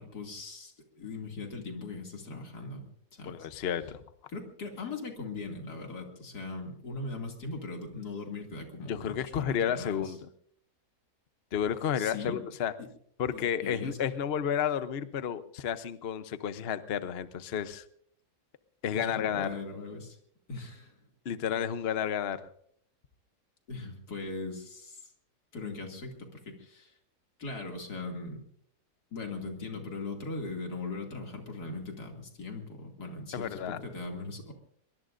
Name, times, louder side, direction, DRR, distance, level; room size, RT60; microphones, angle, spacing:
voice 1, 0.0-3.5 4.3-10.2 12.0-12.4 12.8-12.9 13.3-14.0 18.9-20.2 20.5-21.0 23.7-25.1 25.5-26.9 27.4-28.4 29.1-34.5, left 3 dB, 90° left, 2 dB, 3.1 m, -40 dB
voice 2, 3.3-4.0 8.9-10.3 11.5-12.7 13.2-17.8 18.8-19.5 21.2-22.4 33.3-33.8, left 8 dB, 50° left, 12 dB, 0.9 m, -31 dB
23.5 x 22.5 x 2.6 m, 0.64 s
omnidirectional pair, 1.7 m